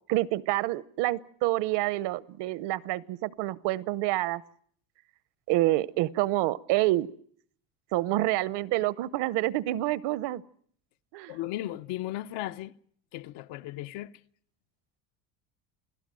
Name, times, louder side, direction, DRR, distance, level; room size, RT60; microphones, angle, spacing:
voice 1, 0.1-4.4 5.5-7.1 7.9-10.4 11.1-11.4, right 17 dB, 65° right, 0.9 m, -27 dB
voice 2, 11.3-12.7 13.1-14.1, left 15 dB, 70° left, 1.0 m, -36 dB
28.5 x 17.5 x 7.6 m
cardioid pair, 135°, 45 cm